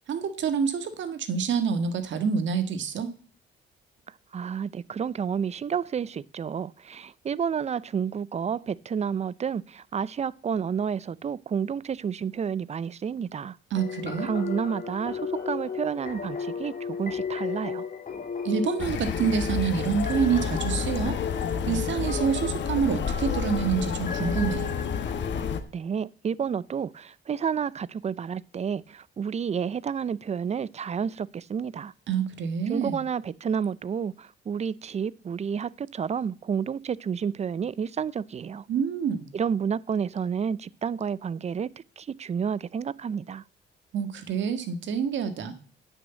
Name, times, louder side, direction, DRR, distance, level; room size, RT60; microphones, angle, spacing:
voice 1, 0.1-3.1 13.7-14.3 18.4-21.2 21.7-24.7 32.1-33.0 38.7-39.3 43.9-45.6, right 6 dB, 70° right, 1.7 m, -27 dB
voice 2, 4.3-13.6 14.2-17.9 25.7-31.9 32.7-38.6 39.3-41.7 42.0-43.4, right 7 dB, 35° right, 0.5 m, -30 dB
sound 1, 13.7-25.6, left 5 dB, 45° left, 3.0 m, -35 dB
sound 2, 18.8-25.6, left 7 dB, 65° left, 1.3 m, -30 dB
10.0 x 6.4 x 7.9 m
cardioid pair, 90°, 20 cm